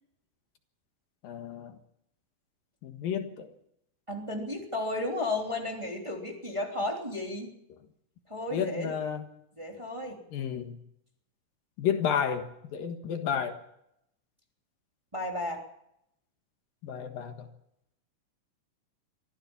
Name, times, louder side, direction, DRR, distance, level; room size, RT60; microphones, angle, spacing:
voice 1, 1.2-1.7 2.8-3.5 8.5-9.3 10.3-10.8 11.8-13.6 16.8-17.5, left 8 dB, 75° left, 6 dB, 3.3 m, -31 dB
voice 2, 4.1-7.5 8.3-8.9 9.6-10.2 15.1-15.6, left 2 dB, 10° right, 1 dB, 2.8 m, -33 dB
24.5 x 15.5 x 7.2 m, 0.77 s
omnidirectional pair, 4.2 m